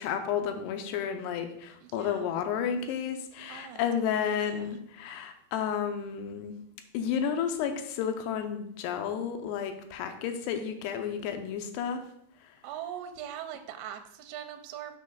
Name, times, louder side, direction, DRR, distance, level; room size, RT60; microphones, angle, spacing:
voice 1, 0.0-6.6 6.9-12.0, left 8 dB, 80° left, 7 dB, 2.7 m, -32 dB
voice 2, 1.8-2.3 3.5-3.8 4.1-4.8 12.6-15.0, right 10 dB, 80° right, 6 dB, 2.3 m, -41 dB
6.4 x 6.3 x 3.8 m, 0.71 s
omnidirectional pair, 5.0 m